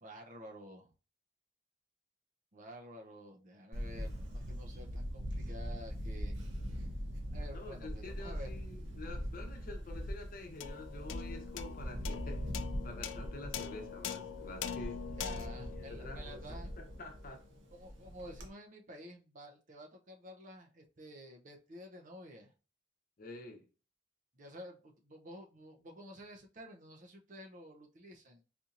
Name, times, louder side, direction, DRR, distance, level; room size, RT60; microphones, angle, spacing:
voice 1, 0.0-0.9 2.5-6.5 7.3-8.5 15.2-16.7 17.7-22.5 24.3-28.4, equal, 45° right, 0.6 m, -51 dB
Camera, 3.7-18.5, equal, 75° right, 0.8 m, -42 dB
voice 2, 7.5-12.4 12.8-15.0 15.7-17.4 23.2-23.6, left 2 dB, 50° left, 0.9 m, -48 dB
sound 1, 10.6-17.2, left 8 dB, 85° left, 0.3 m, -44 dB
4.3 x 2.7 x 2.5 m
head